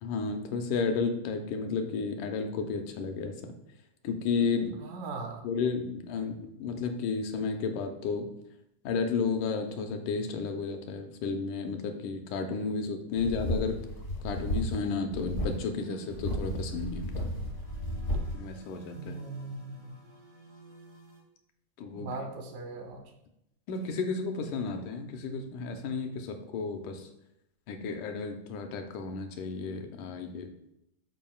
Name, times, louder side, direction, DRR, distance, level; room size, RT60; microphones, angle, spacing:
voice 1, 0.0-3.5 4.0-4.8 5.4-8.3 8.8-13.8 14.2-17.3 18.3-19.1 21.8-22.2 23.7-27.1 27.7-30.5, left 4 dB, 80° left, 5 dB, 2.1 m, -32 dB
voice 2, 4.8-5.4 18.9-19.9 21.9-23.0, right 3 dB, 85° right, 2 dB, 2.9 m, -39 dB
sound 1, 13.2-14.8 15.1-15.6 16.1-18.3, equal, 55° left, 0.8 m, -33 dB
sound 2, 15.7-21.2, right 1 dB, 50° right, 0.7 m, -53 dB
13.0 x 4.9 x 2.3 m, 0.82 s
omnidirectional pair, 3.8 m